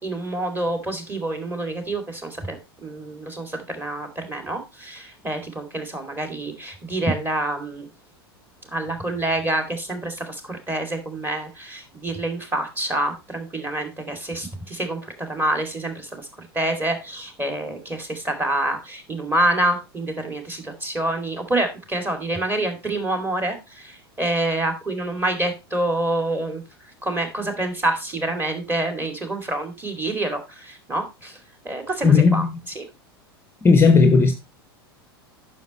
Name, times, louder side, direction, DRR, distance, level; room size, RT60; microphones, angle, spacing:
voice 1, 0.0-7.9 8.7-16.3 16.5-26.6 27.0-31.4 31.6-32.4 32.7-32.9, right 1 dB, 15° right, 2.6 m, -27 dB
voice 2, 32.0-32.5 33.6-34.3, left 4 dB, 20° left, 0.9 m, -14 dB
9.3 x 6.3 x 4.2 m
figure-of-eight pair, 90°, 13 cm